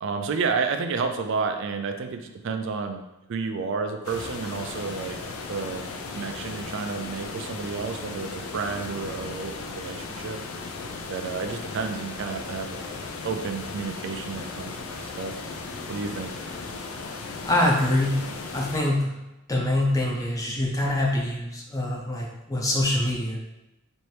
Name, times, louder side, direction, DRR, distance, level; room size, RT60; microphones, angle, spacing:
voice 1, 0.0-3.0 3.3-5.2 5.5-5.9 6.1-10.4 11.1-12.9 13.2-15.4 15.9-16.3, right 5 dB, 55° right, 6 dB, 0.4 m, -31 dB
sound 1, 4.0-18.8, left 4 dB, 65° left, 0.5 m, -36 dB
voice 2, 17.5-18.2 18.5-19.1 19.5-23.4, left 1 dB, 15° left, -2 dB, 0.6 m, -24 dB
4.3 x 2.6 x 3.2 m, 0.95 s
head